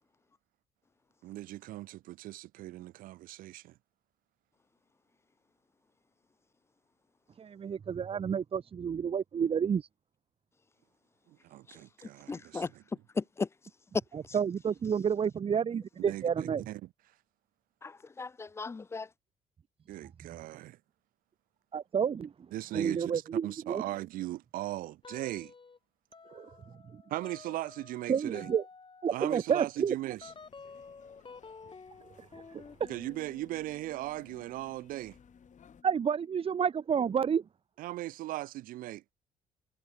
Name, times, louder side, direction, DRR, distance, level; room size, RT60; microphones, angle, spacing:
voice 1, 1.2-3.8 11.3-12.6 16.0-16.9 19.9-20.8 22.5-25.5 27.1-28.5 29.1-30.3 32.9-35.2 37.8-39.0, right 16 dB, 70° right, 0.8 m, -38 dB
voice 2, 7.4-9.8 14.3-16.6 21.7-22.3 22.7-23.8 26.3-26.5 26.9-27.0 28.1-28.6 29.0-29.9 32.5-32.9 35.8-37.4, right 7 dB, 40° right, 0.7 m, -30 dB
voice 3, 11.7-12.7 13.1-13.5 14.2-14.4 17.8-19.1, left 4 dB, 20° left, 0.3 m, -37 dB
sound 1, 25.0-25.8 26.1-36.5, left 4 dB, 35° left, 5.6 m, -53 dB
sound 2, 30.1-35.8, left 8 dB, 55° left, 7.4 m, -61 dB
hypercardioid pair, 55°, 15 cm